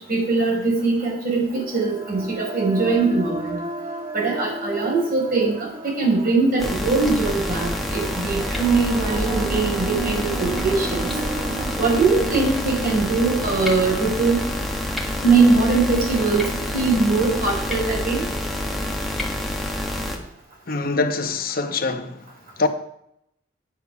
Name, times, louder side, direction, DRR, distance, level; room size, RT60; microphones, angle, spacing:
voice 1, 0.1-3.6 4.1-11.1 11.8-14.4 15.2-18.3, right 3 dB, 55° right, 4.9 m, -21 dB
sound 1, 1.0-15.1, right 3 dB, 30° right, 1.4 m, -34 dB
sound 2, 6.6-20.2, left 1 dB, ahead, 1.5 m, -27 dB
voice 2, 20.7-22.3 22.6-22.7, left 3 dB, 50° left, 1.0 m, -24 dB
9.2 x 8.5 x 5.9 m
head